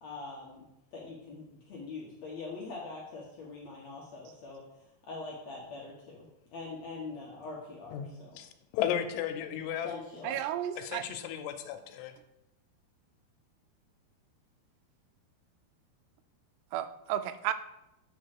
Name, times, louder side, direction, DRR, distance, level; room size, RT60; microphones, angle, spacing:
voice 1, 0.0-4.6 5.0-8.4 9.8-10.4, left 3 dB, 70° left, -3 dB, 1.6 m, -43 dB
voice 2, 8.4-9.9 10.8-12.1, left 10 dB, 90° left, 7 dB, 2.9 m, -34 dB
voice 3, 10.2-11.0 16.7-17.5, right 12 dB, 90° right, 11 dB, 2.7 m, -33 dB
8.6 x 4.4 x 6.5 m, 0.87 s
omnidirectional pair, 4.7 m